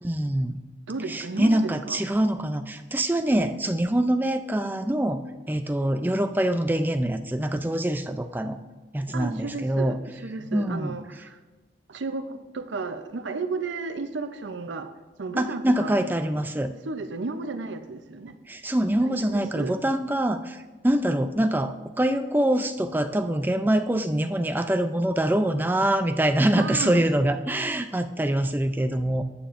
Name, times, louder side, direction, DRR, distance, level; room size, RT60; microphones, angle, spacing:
voice 1, 0.0-0.6 1.1-5.2 5.5-8.6 8.9-10.0 10.5-11.2 15.4-16.7 18.5-29.2, right 1 dB, 10° right, 8 dB, 0.4 m, -24 dB
voice 2, 0.9-2.0 9.1-10.0 10.2-11.4 11.9-14.9 15.2-15.9 16.7-18.3 19.0-19.7 26.6-27.0, right 3 dB, 75° right, 9 dB, 0.6 m, -33 dB
14.0 x 8.9 x 2.6 m, 1.3 s
head